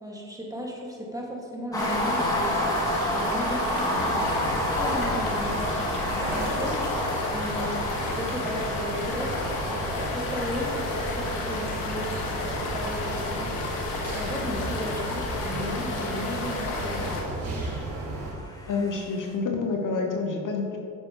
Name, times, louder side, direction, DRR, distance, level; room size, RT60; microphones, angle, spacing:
voice 1, 0.0-2.6 3.0-4.3 4.8-6.9 7.3-7.8 8.1-9.4 9.7-13.6 14.1-17.2, equal, 10° right, -2 dB, 1.8 m, -35 dB
sound 1, 1.7-17.2, left 2 dB, 80° left, 1.3 m, -32 dB
sound 2, 1.7-19.0, equal, 10° left, 1.4 m, -32 dB
sound 3, 3.9-18.3, right 1 dB, 85° right, 1.8 m, -35 dB
voice 2, 18.7-20.8, left 4 dB, 45° left, 2 dB, 1.0 m, -28 dB
8.9 x 6.2 x 3.0 m, 2.4 s
hypercardioid pair, 60°, 42 cm